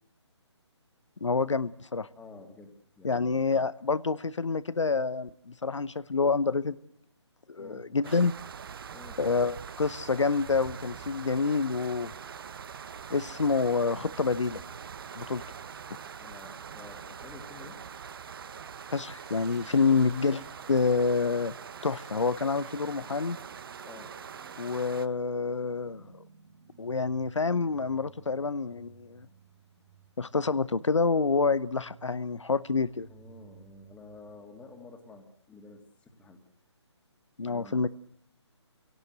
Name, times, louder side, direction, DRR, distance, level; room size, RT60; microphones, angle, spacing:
voice 1, 1.2-2.1 3.0-6.8 7.5-8.3 9.2-12.1 13.1-14.6 15.1-15.4 18.9-20.4 20.7-21.5 21.8-23.4 24.6-26.2 26.8-29.3 30.2-33.1 37.4-37.9, left 4 dB, 80° left, 17 dB, 0.9 m, -27 dB
voice 2, 2.1-3.4 7.6-7.9 8.9-9.2 16.2-17.8 19.8-20.0 23.8-24.1 33.1-36.4 37.5-37.9, left 3 dB, 10° left, 6 dB, 2.2 m, -50 dB
sound 1, 8.0-25.1, right 7 dB, 50° right, 1.0 m, -43 dB
sound 2, 19.1-35.1, right 7 dB, 30° right, 2.8 m, -57 dB
27.0 x 17.5 x 7.9 m, 0.67 s
figure-of-eight pair, 145°, 15 cm